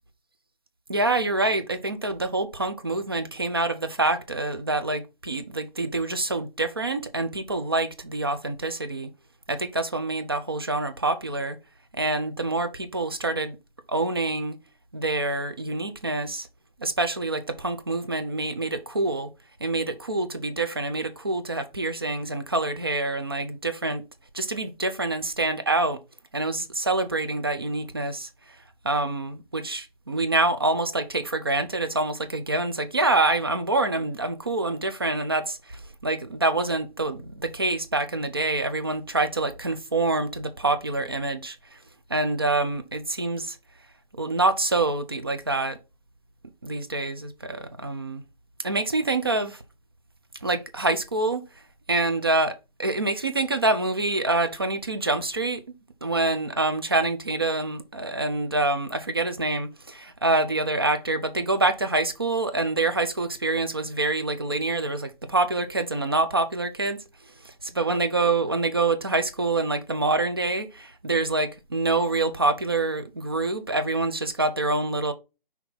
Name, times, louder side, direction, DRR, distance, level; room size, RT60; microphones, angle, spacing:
voice 1, 0.9-9.1 9.5-11.6 11.9-13.6 13.9-14.6 14.9-16.5 16.8-19.3 19.6-24.0 24.3-26.0 26.3-28.3 28.8-41.8 42.1-43.6 44.2-45.8 46.6-48.2 48.6-49.6 50.4-51.4 51.9-55.6 56.0-67.0 67.4-75.1, right 2 dB, 25° right, 0.5 m, -26 dB
5.8 x 3.4 x 5.6 m
hypercardioid pair, 165°, 29 cm